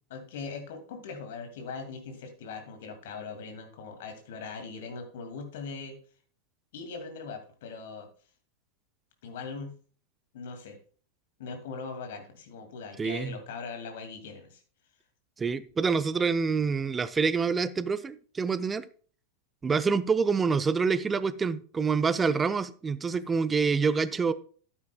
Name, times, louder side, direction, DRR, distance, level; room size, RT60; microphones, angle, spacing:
voice 1, 0.1-6.0 6.7-8.1 9.2-9.7 10.3-10.8 11.4-14.6, left 4 dB, 55° left, 5 dB, 2.2 m, -40 dB
voice 2, 13.0-13.4 15.4-18.8 19.6-24.3, right 5 dB, 15° right, 15 dB, 0.5 m, -26 dB
12.0 x 9.6 x 2.2 m, 0.42 s
figure-of-eight pair, 90°, 0 cm